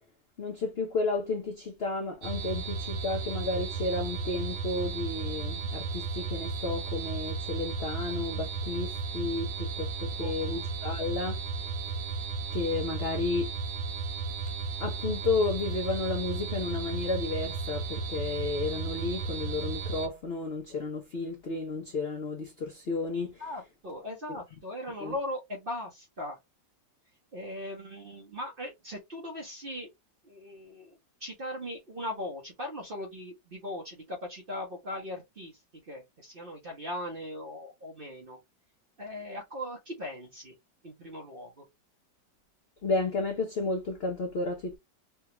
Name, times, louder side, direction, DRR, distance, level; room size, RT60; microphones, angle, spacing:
voice 1, 0.4-11.4 12.5-13.5 14.8-23.4 24.3-24.4 25.0-25.2 42.8-44.8, left 3 dB, 65° left, 0.6 m, -32 dB
sound 1, 2.2-20.1, right 4 dB, 85° right, 1.3 m, -34 dB
voice 2, 10.2-10.6 23.4-26.4 27.3-29.9 30.2-38.4 39.0-40.5 40.8-41.6, left 1 dB, 45° right, 0.7 m, -39 dB
3.4 x 2.2 x 2.9 m
omnidirectional pair, 1.9 m